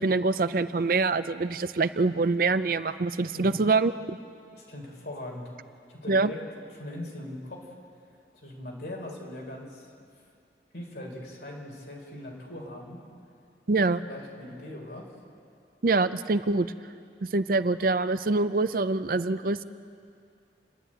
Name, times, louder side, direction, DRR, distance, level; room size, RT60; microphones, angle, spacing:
voice 1, 0.0-4.2 6.1-6.3 13.7-14.0 15.8-16.7 17.2-19.6, right 3 dB, 50° right, 12 dB, 0.5 m, -25 dB
voice 2, 3.3-3.6 4.5-5.5 5.9-6.4 6.7-7.7 8.3-9.9 10.7-13.0 14.0-15.1, left 1 dB, 70° left, -1 dB, 4.4 m, -40 dB
29.5 x 11.0 x 9.0 m, 2.4 s
head